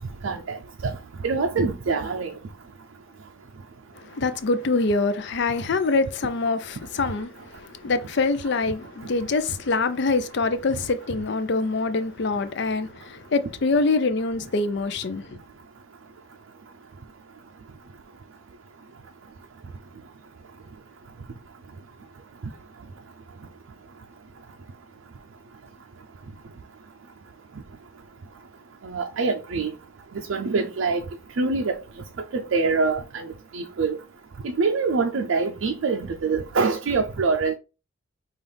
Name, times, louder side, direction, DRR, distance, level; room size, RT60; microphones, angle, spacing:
voice 1, 0.2-0.6 0.8-0.9 1.2-2.3 28.8-29.7 30.1-31.0 31.4-31.8 32.3-33.3 33.5-34.0 34.4-37.5, right 4 dB, 75° right, 0.4 m, -24 dB
voice 2, 3.9-15.4, left 3 dB, 55° left, 0.5 m, -25 dB
5.4 x 2.4 x 3.3 m
head